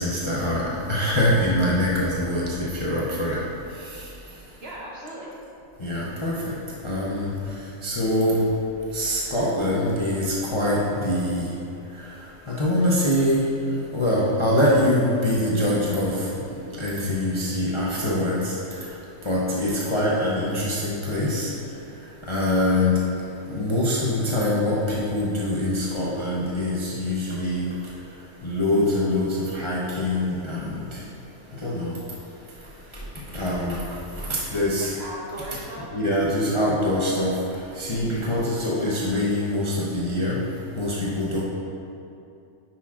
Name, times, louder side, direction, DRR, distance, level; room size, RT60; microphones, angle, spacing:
voice 1, 0.0-2.4 2.8-3.4 5.8-6.3 6.8-7.3 7.8-8.4 8.9-10.3 10.5-11.5 12.5-13.4 13.9-16.1 16.8-18.4 19.3-21.5 22.3-22.9 23.5-27.6 28.4-29.3 29.5-30.6 31.6-31.9 33.3-33.8 34.5-34.9 35.9-37.3 37.8-40.4 40.8-41.4, left 1 dB, 30° left, -6 dB, 0.6 m, -23 dB
voice 2, 4.6-5.3 34.8-35.9 41.2-41.4, right 1 dB, 50° right, -4 dB, 1.2 m, -38 dB
10.0 x 5.9 x 2.5 m, 2.7 s
omnidirectional pair, 1.4 m